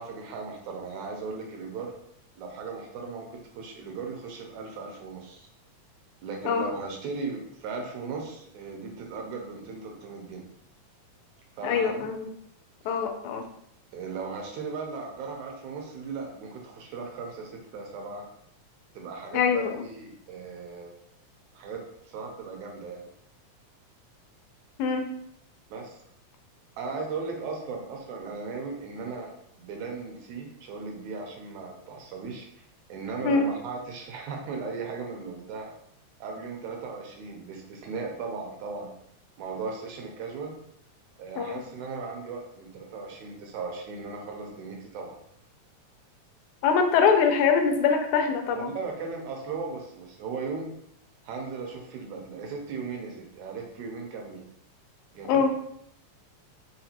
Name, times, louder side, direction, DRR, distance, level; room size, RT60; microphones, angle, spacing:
voice 1, 0.0-2.0 2.4-5.5 6.2-10.4 11.5-12.1 12.8-13.0 13.9-18.2 18.9-20.9 21.5-21.8 22.1-23.1 25.7-26.0 26.8-32.5 32.9-35.7 36.2-38.9 39.4-40.6 41.2-45.2 48.5-50.7 51.2-54.4 55.1-55.5, right 4 dB, 80° right, 1 dB, 2.0 m, -37 dB
voice 2, 11.6-12.3 12.9-13.5 19.3-19.7 24.8-25.0 33.2-33.5 41.4-41.5 46.6-48.7 55.3-55.5, left 6 dB, 85° left, 4 dB, 2.0 m, -23 dB
5.0 x 2.2 x 2.8 m, 0.72 s
omnidirectional pair, 3.3 m